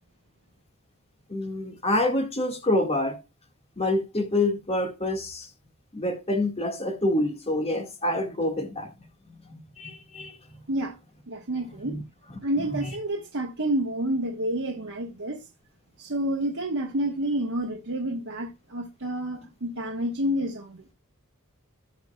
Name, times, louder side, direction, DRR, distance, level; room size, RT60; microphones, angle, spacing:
voice 1, 1.3-3.2 3.8-5.5 5.9-10.6 11.8-12.0 12.7-12.9, left 1 dB, 25° left, 1.8 m, -27 dB
voice 2, 11.3-12.0 12.4-15.5 16.0-20.8, right 1 dB, 65° right, 1.2 m, -29 dB
17.0 x 5.7 x 2.3 m
head